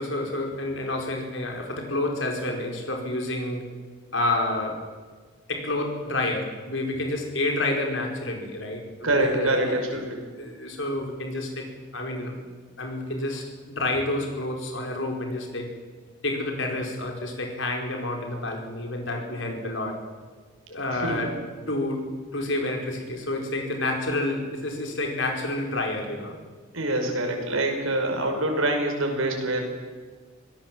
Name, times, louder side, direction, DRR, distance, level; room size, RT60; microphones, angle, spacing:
voice 1, 0.0-3.7 4.1-4.8 5.5-10.0 10.4-11.7 11.9-12.3 12.8-15.7 16.2-20.0 20.7-21.3 21.7-26.3, left 2 dB, 60° left, 2 dB, 4.9 m, -29 dB
voice 2, 9.0-10.2 20.9-21.2 26.7-29.6, right 1 dB, 85° right, 2 dB, 5.6 m, -25 dB
25.0 x 17.5 x 7.8 m, 1.5 s
head